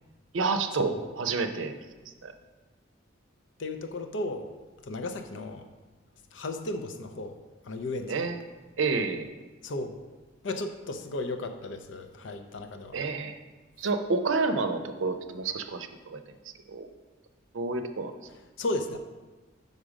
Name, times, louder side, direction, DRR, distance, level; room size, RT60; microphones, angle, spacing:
voice 1, 0.3-1.7 2.2-2.3 8.1-8.4 8.8-9.3 12.9-13.4 13.8-16.2 16.7-16.9 17.5-18.1, right 4 dB, 80° right, 8 dB, 0.6 m, -29 dB
voice 2, 3.6-4.5 4.8-5.7 6.3-7.4 7.6-8.1 9.6-10.0 10.4-13.0 18.6-19.0, left 2 dB, 65° left, 7 dB, 0.5 m, -34 dB
5.3 x 5.0 x 6.2 m, 1.2 s
head